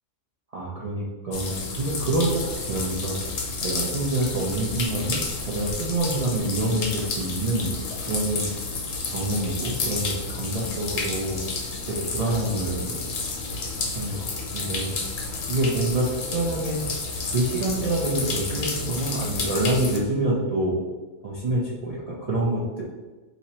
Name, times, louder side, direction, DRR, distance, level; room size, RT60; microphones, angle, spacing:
voice 1, 0.5-3.2 3.6-7.7 8.0-8.5 9.1-11.4 11.9-12.9 13.9-14.2 14.5-14.9 15.5-16.1 16.3-16.8 17.3-20.8 21.2-22.8, right 2 dB, 45° right, -6 dB, 0.5 m, -26 dB
sound 1, 1.3-20.0, left 3 dB, 65° left, 0.9 m, -31 dB
3.0 x 2.8 x 4.2 m, 1.2 s
omnidirectional pair, 1.4 m